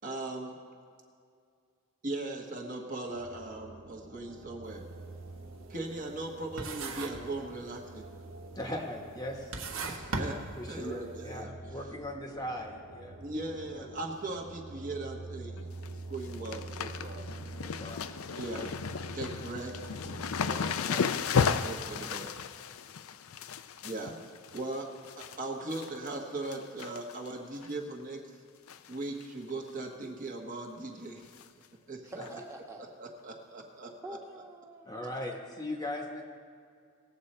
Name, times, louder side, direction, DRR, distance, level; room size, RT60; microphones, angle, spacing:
voice 1, 0.0-0.6 2.0-4.8 5.7-8.1 9.9-11.5 13.2-17.3 18.4-18.7 19.1-20.4 21.3-22.4 23.8-24.2 24.5-28.2 28.9-31.3 31.9-32.3 33.0-34.2, right 2 dB, 35° right, 1 dB, 1.2 m, -39 dB
sound 1, 3.1-20.7, right 3 dB, 90° right, 0.9 m, -46 dB
sound 2, 4.7-4.9 5.3-6.3 6.6-7.3 7.6-8.2 8.8-8.9 9.3-11.0, right 3 dB, 65° right, 1.3 m, -37 dB
voice 2, 8.5-9.5 10.6-11.0 11.2-13.2 13.7-14.0 17.6-18.1 19.1-19.2 32.2-32.3 34.8-36.2, left 1 dB, 15° left, 1 dB, 1.1 m, -39 dB
sound 3, 15.6-15.9 16.1-25.4 25.7-26.1 26.5-27.3 27.6-27.7 28.7-29.0 29.2-29.3 29.7-29.8 31.4-31.5 32.2-32.3, left 6 dB, 70° left, 0.5 m, -34 dB
voice 3, 20.4-21.6 32.1-32.9 34.0-35.1, right 2 dB, 15° right, 0 dB, 1.3 m, -46 dB
19.0 x 7.8 x 4.3 m, 2.3 s
head